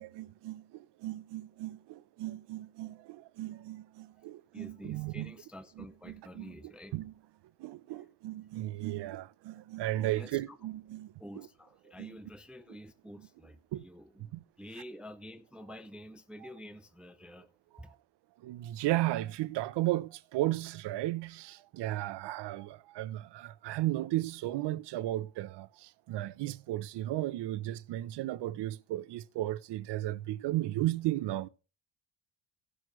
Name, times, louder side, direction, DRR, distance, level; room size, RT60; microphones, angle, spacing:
voice 1, 0.0-5.3 5.8-6.5 6.9-7.1 7.6-11.5 12.0-12.2 13.7-13.8 14.3-14.4 17.7-18.0 18.4-31.5, right 16 dB, 70° right, 0.6 m, -35 dB
voice 2, 4.5-7.0 9.9-10.6 11.2-17.5 17.8-17.9, equal, ahead, 0.4 m, -49 dB
16.5 x 6.2 x 3.1 m
cardioid pair, 130°, 43 cm